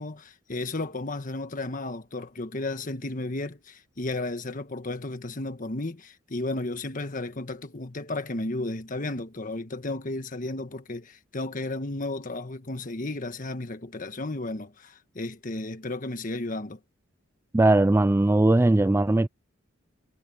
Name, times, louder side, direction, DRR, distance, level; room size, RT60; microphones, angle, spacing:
voice 1, 0.0-16.8, left 2 dB, 45° left, 1.4 m, -33 dB
voice 2, 17.5-19.3, right 2 dB, 10° right, 0.3 m, -19 dB
head